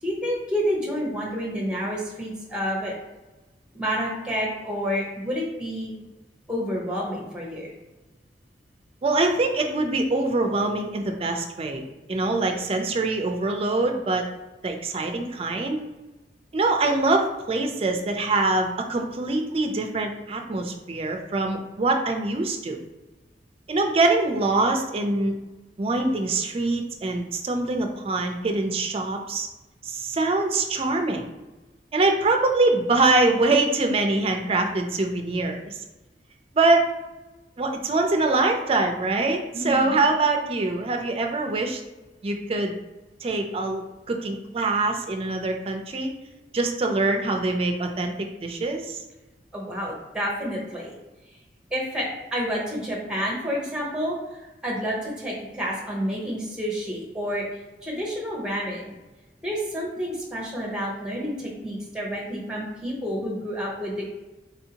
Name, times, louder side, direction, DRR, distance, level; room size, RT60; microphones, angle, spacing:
voice 1, 0.0-2.9 3.7-6.1 6.5-7.7 39.5-40.0 49.5-50.9 51.7-57.5 57.8-58.9 59.4-64.2, equal, 5° right, -2 dB, 0.8 m, -29 dB
voice 2, 9.0-11.8 12.1-14.2 14.6-15.8 16.5-22.8 23.7-25.3 25.8-29.5 29.8-31.3 31.9-35.8 36.5-36.9 37.6-41.8 42.2-42.7 43.2-46.1 46.5-49.0, right 2 dB, 35° right, 3 dB, 0.4 m, -24 dB
4.1 x 2.6 x 2.8 m, 1.1 s
head